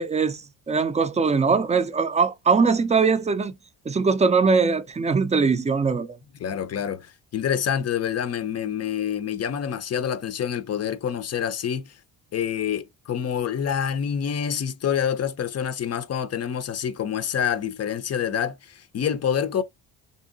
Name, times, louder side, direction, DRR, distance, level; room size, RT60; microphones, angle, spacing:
voice 1, 0.0-3.5 3.9-6.1, right 5 dB, 15° right, 0.4 m, -21 dB
voice 2, 6.4-11.9 12.3-19.6, left 8 dB, 35° left, 0.5 m, -27 dB
2.9 x 2.7 x 2.6 m
hypercardioid pair, 55°, 43 cm